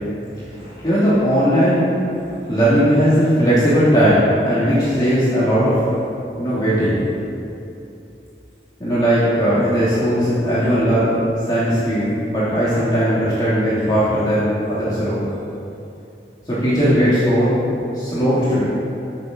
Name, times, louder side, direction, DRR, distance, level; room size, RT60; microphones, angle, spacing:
voice 1, 0.5-2.0 2.3-5.8 6.4-7.0 8.8-11.2 11.5-15.2 16.5-17.5 17.9-18.6, equal, 25° left, -11 dB, 2.9 m, -18 dB
22.5 x 7.6 x 3.9 m, 2.7 s
head